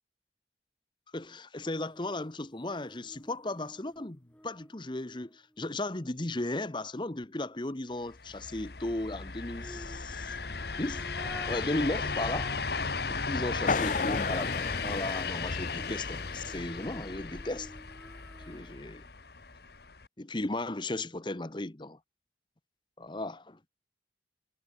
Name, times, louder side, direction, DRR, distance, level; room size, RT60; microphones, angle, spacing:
voice 1, 1.1-10.4 10.8-17.7 18.5-19.0 20.2-22.0 23.0-23.6, left 2 dB, 25° left, 1.0 m, -36 dB
sound 1, 1.6-5.9 9.5-12.8 13.2-13.3 16.1-19.0 19.4-19.5, equal, 5° left, 5.3 m, -51 dB
sound 2, 8.1-20.1, left 4 dB, 60° left, 1.4 m, -36 dB
sound 3, 13.7-17.2, left 4 dB, 45° left, 0.7 m, -34 dB
head